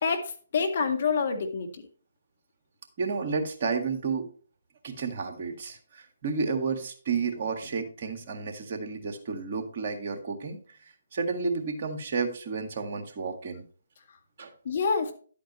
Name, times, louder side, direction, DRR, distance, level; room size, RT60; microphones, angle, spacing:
voice 1, 0.0-1.8 14.6-15.1, left 5 dB, 50° left, 5 dB, 1.9 m, -27 dB
voice 2, 3.0-4.3 4.8-10.6 11.1-13.6 14.4-14.5, right 5 dB, 45° right, 6 dB, 1.9 m, -31 dB
12.0 x 8.4 x 3.1 m, 0.42 s
figure-of-eight pair, 140°, 0 cm